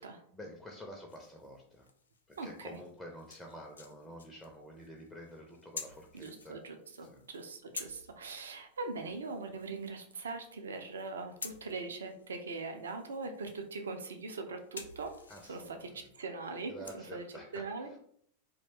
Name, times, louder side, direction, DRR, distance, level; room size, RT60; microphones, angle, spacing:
voice 1, 0.3-1.9 2.3-6.6 7.0-7.2 15.3-16.1 16.7-18.0, equal, 10° left, 0 dB, 0.4 m, -49 dB
sound 1, 1.1-16.9, left 4 dB, 70° left, 0.3 m, -52 dB
voice 2, 2.4-2.7 6.1-15.1 15.5-15.8 16.2-17.2 17.5-18.0, right 3 dB, 65° right, 5 dB, 0.4 m, -41 dB
2.5 x 2.1 x 3.4 m, 0.64 s
figure-of-eight pair, 90°, 0 cm